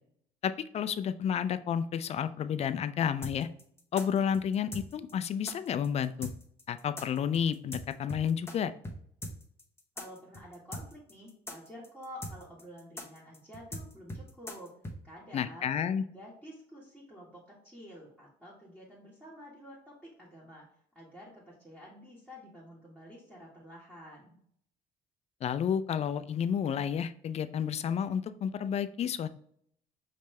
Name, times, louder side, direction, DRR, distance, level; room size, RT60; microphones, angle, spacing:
voice 1, 0.4-3.5 3.9-6.3 6.7-8.7 15.3-16.0 25.4-29.3, left 8 dB, 40° left, 12 dB, 0.4 m, -31 dB
sound 1, 3.2-8.5 8.8-9.0 9.2-15.0, left 1 dB, 15° left, 0.9 m, -41 dB
voice 2, 9.9-14.8 15.0-20.7 20.9-24.4, equal, 5° right, -7 dB, 1.6 m, -50 dB
5.1 x 3.2 x 3.2 m, 0.65 s
cardioid pair, 110°, 17 cm